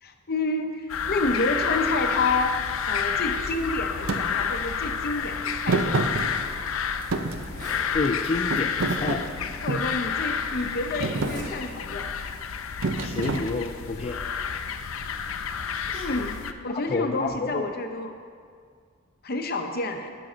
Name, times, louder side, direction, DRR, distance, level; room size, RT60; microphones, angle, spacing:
voice 1, 0.0-2.6 2.9-6.1 9.6-12.1 15.9-18.2 19.2-20.2, left 2 dB, 50° left, 5 dB, 0.8 m, -29 dB
sound 1, 0.9-16.5, left 6 dB, 85° left, 0.5 m, -30 dB
Thump thud, 4.1-4.2 5.7-6.7 7.1-8.1 8.5-10.0 10.5-10.7 11.0-11.4 12.8-13.9, right 3 dB, 75° right, 0.6 m, -28 dB
Zipper (clothing), 6.4-6.5 7.0-7.1 7.4-7.9 8.8-8.9 9.8-9.9 11.0-11.5 11.9-12.2, equal, 35° right, 1.8 m, -41 dB
voice 2, 7.7-9.3 13.0-14.2 15.9-16.1 16.7-17.6, left 3 dB, 30° left, 1 dB, 0.4 m, -30 dB
9.6 x 6.2 x 6.2 m, 2.1 s
head